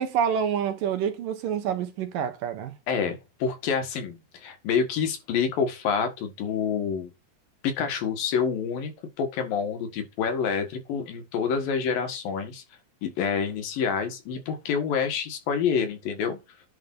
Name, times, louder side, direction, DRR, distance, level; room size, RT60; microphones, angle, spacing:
voice 1, 0.0-2.7, right 8 dB, 75° right, 2.9 m, -27 dB
voice 2, 2.9-7.1 7.6-8.9 9.2-12.6 13.0-16.4, left 6 dB, 80° left, 3.5 m, -27 dB
10.5 x 3.7 x 5.5 m
omnidirectional pair, 4.1 m